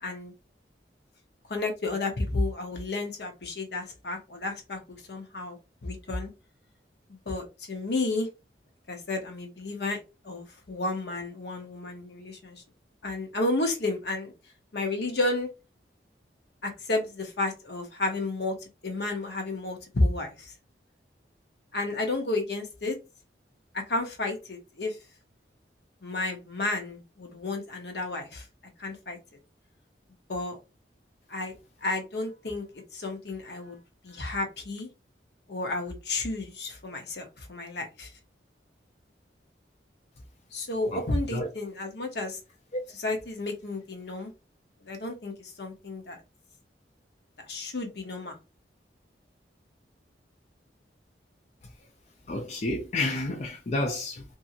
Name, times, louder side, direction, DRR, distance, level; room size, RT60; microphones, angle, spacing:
voice 1, 0.0-0.3 1.5-6.3 7.1-8.3 8.9-12.6 13.0-14.3 14.7-15.5 16.6-18.6 18.8-20.5 21.7-23.0 23.7-25.0 26.0-28.5 28.8-29.2 30.3-30.6 31.3-31.5 31.8-32.6 32.9-34.9 35.5-38.1 40.5-42.4 42.9-44.3 44.8-46.2 47.5-48.4, left 2 dB, 65° left, 0.8 m, -32 dB
voice 2, 52.3-54.2, left 2 dB, 35° left, 0.4 m, -30 dB
2.7 x 2.6 x 2.5 m
head